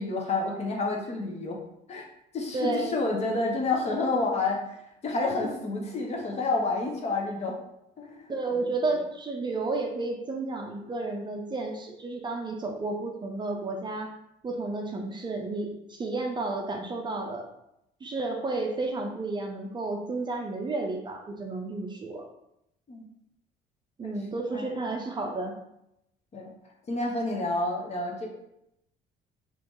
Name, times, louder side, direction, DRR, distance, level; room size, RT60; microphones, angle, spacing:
voice 1, 0.0-1.6 1.9-2.0 2.3-7.6 8.0-8.6 22.9-23.1 24.0-24.2 24.5-24.7 26.3-26.5 26.9-28.3, left 3 dB, 40° left, 1 dB, 0.8 m, -29 dB
voice 2, 2.5-3.0 8.3-14.1 14.4-17.5 18.0-22.2 24.0-25.6, right 3 dB, 25° right, 2 dB, 0.5 m, -32 dB
3.0 x 2.8 x 3.6 m, 0.81 s
cardioid pair, 110°, 17 cm